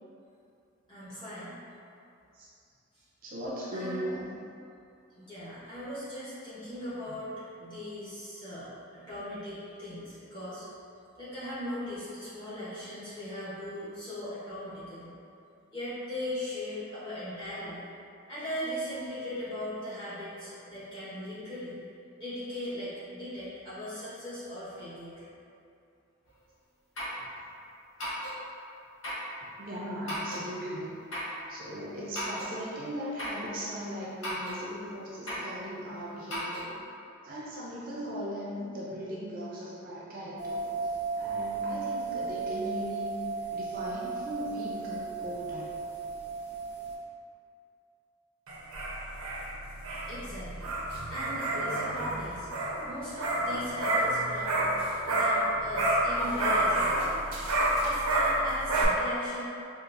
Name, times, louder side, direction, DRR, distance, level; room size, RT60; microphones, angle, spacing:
voice 1, 0.9-1.6 3.7-4.2 5.1-7.3 7.6-8.7 8.9-10.7 11.2-15.1 15.7-17.8 18.3-21.8 22.2-25.1 50.1-50.7 51.1-52.5 52.8-54.7 55.1-57.0 57.8-59.4, left 1 dB, 20° left, -12 dB, 1.1 m, -39 dB
voice 2, 3.2-4.3 7.1-7.2 27.2-27.3 29.6-31.0 31.5-36.7 37.2-43.1 43.5-45.8, equal, 40° right, -7 dB, 0.5 m, -38 dB
sound 1, 26.3-26.4 26.9-27.2 28.0-28.4 29.0-29.3 30.1-30.4 31.1-31.4 32.1-32.5 33.2-33.4 34.2-34.6 35.3-35.5 36.3-36.7, equal, 70° left, 1.0 m, -35 dB
sound 2, 40.4-46.9, right 4 dB, 55° left, 0.6 m, -35 dB
sound 3, 48.5-55.5 55.7-58.9, right 1 dB, 85° right, 0.6 m, -29 dB
4.0 x 2.5 x 2.5 m, 2.6 s
head